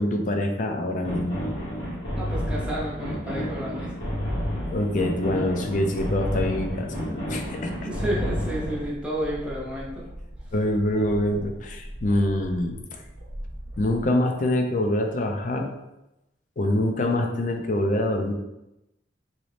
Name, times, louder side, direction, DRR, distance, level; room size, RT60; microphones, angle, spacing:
voice 1, 0.0-1.4 4.7-7.7 10.5-13.0 13.8-15.7 16.6-18.3, left 1 dB, 45° left, 4 dB, 0.4 m, -25 dB
sound 1, 1.0-8.9, equal, 60° left, 1.0 m, -30 dB
voice 2, 2.2-3.9 7.8-10.0, right 1 dB, 5° right, -5 dB, 0.6 m, -31 dB
sound 2, 8.5-14.1, equal, 35° right, 0.8 m, -40 dB
3.0 x 2.7 x 3.2 m, 0.93 s
head